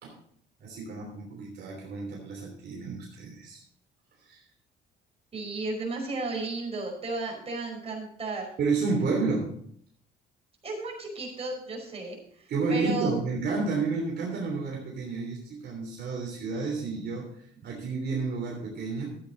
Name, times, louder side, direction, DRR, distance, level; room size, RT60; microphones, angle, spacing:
voice 1, 0.6-3.6 4.2-4.4 8.6-9.5 12.5-19.1, right 4 dB, 55° right, -1 dB, 3.2 m, -31 dB
voice 2, 5.3-8.4 10.6-13.1, right 3 dB, 30° right, -1 dB, 5.0 m, -34 dB
13.5 x 8.8 x 4.0 m, 0.65 s
cardioid pair, 105°, 20 cm